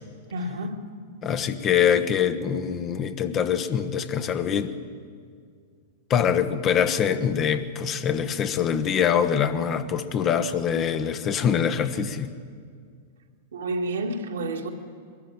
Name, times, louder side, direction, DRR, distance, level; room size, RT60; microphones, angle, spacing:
voice 1, 0.3-0.8 13.5-14.7, right 1 dB, 75° right, 2 dB, 2.0 m, -29 dB
voice 2, 1.2-4.7 6.1-12.3, left 8 dB, 30° left, 9 dB, 1.1 m, -24 dB
21.5 x 13.5 x 9.1 m, 2.1 s
hypercardioid pair, 100°, 0 cm